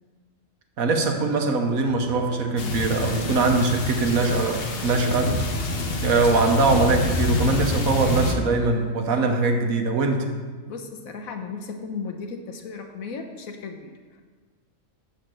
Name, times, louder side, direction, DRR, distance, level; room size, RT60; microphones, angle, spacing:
voice 1, 0.8-5.3 6.0-10.3, right 3 dB, 85° right, 4 dB, 1.6 m, -22 dB
Piano, 1.9-8.7, right 3 dB, 50° right, 1.5 m, -41 dB
sound 1, 2.6-8.3, left 3 dB, 50° left, 1.1 m, -27 dB
voice 2, 10.7-14.2, left 4 dB, 85° left, 5 dB, 1.4 m, -35 dB
12.5 x 4.2 x 7.6 m, 1.5 s
omnidirectional pair, 1.4 m